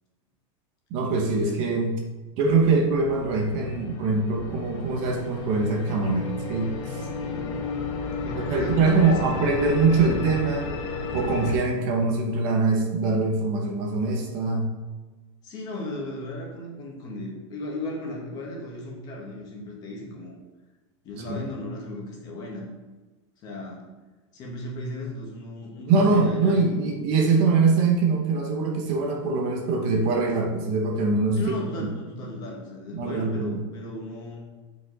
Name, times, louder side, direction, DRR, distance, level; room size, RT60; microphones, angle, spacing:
voice 1, 0.9-2.0 2.4-7.1 8.4-10.7 11.1-14.7 21.3-21.4 25.9-31.5 31.8-31.9 32.9-33.6, right 4 dB, 35° right, 1 dB, 0.9 m, -23 dB
sound 1, 2.4-11.5, left 4 dB, 65° left, 1.5 m, -33 dB
voice 2, 7.2-7.7 8.1-9.4 15.4-20.3 21.0-22.7 23.4-23.9 24.3-26.7 31.3-34.5, left 1 dB, 25° left, -1 dB, 1.4 m, -36 dB
8.4 x 5.1 x 3.9 m, 1.2 s
supercardioid pair, 180°, 16 cm